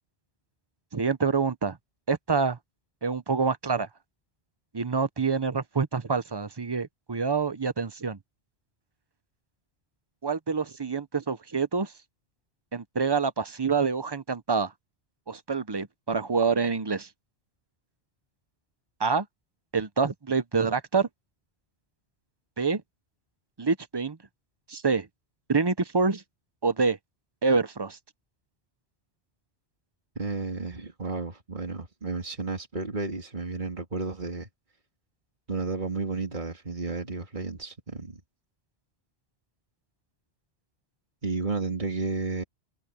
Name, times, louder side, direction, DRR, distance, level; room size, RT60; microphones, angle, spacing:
voice 1, 0.9-1.8 2.1-2.6 3.0-3.9 4.7-8.2 10.2-11.9 12.7-14.7 15.3-17.1 19.0-19.3 19.7-21.1 22.6-22.8 23.6-24.2 24.7-25.1 25.5-26.2 26.6-27.0 27.4-28.0, right 4 dB, 25° right, 0.7 m, -26 dB
voice 2, 30.2-34.5 35.5-38.2 41.2-42.4, right 3 dB, 45° right, 3.0 m, -32 dB
omnidirectional pair, 1.1 m